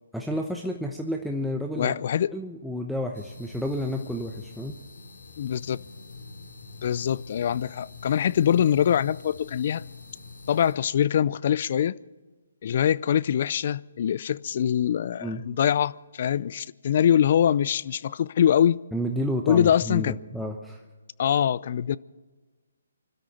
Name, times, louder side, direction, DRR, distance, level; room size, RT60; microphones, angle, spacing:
voice 1, 0.1-2.0 2.3-4.8 15.2-15.4 18.9-20.8, equal, ahead, 0.9 m, -30 dB
voice 2, 1.8-2.3 5.4-5.8 6.8-9.8 10.5-12.0 12.6-18.8 19.5-20.1 21.2-22.0, left 9 dB, 50° left, 0.5 m, -23 dB
sound 1, 3.1-10.7, left 4 dB, 75° left, 4.5 m, -44 dB
25.5 x 13.0 x 4.3 m
hypercardioid pair, 145°, 0 cm